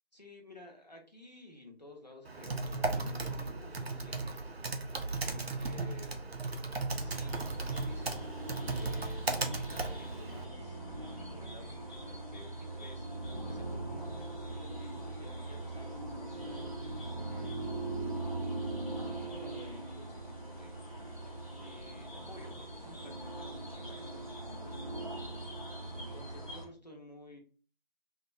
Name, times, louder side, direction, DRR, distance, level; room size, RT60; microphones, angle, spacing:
voice 1, 0.1-4.5 5.0-6.2 7.0-17.6 18.4-20.9 21.2-25.4 26.0-27.4, left 1 dB, 40° left, 1 dB, 0.6 m, -53 dB
Typing, 2.2-10.4, right 3 dB, 75° right, 0.5 m, -36 dB
sound 1, 7.0-26.6, right 2 dB, 35° right, 0.6 m, -41 dB
2.6 x 2.2 x 2.5 m, 0.40 s
figure-of-eight pair, 170°, 31 cm